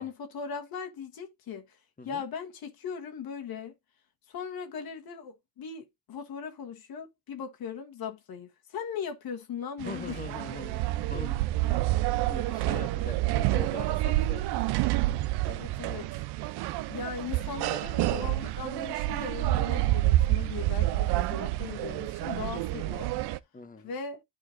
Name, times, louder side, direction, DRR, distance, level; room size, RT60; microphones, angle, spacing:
voice 1, 0.0-1.8 2.0-3.7 4.3-10.2 15.5-16.2 16.9-23.1 23.8-24.2, left 6 dB, 65° left, 1.5 m, -39 dB
voice 2, 9.8-11.4 12.2-14.6 23.5-23.9, left 4 dB, 20° left, 1.5 m, -42 dB
sound 1, 9.8-23.4, right 17 dB, 75° right, 0.6 m, -28 dB
11.5 x 4.4 x 2.6 m
supercardioid pair, 65°, 40 cm